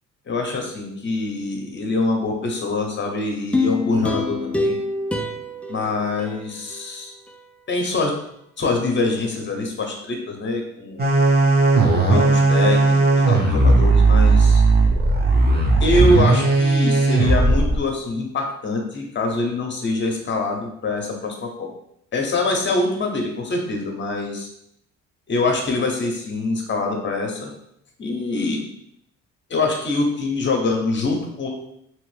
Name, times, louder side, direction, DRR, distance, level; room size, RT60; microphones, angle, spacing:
voice 1, 0.3-4.8 5.7-7.1 7.7-8.1 8.6-11.0 11.9-14.6 15.8-21.7 22.1-24.5 25.3-27.5 28.0-28.6 29.5-31.5, left 2 dB, 40° left, 2 dB, 0.8 m, -24 dB
sound 1, 3.5-6.8 7.3-7.4, left 2 dB, 5° left, 0.3 m, -26 dB
sound 2, 11.0-17.8, right 3 dB, 35° right, 0.8 m, -16 dB
3.0 x 2.5 x 3.3 m, 0.74 s
cardioid pair, 90°, 30 cm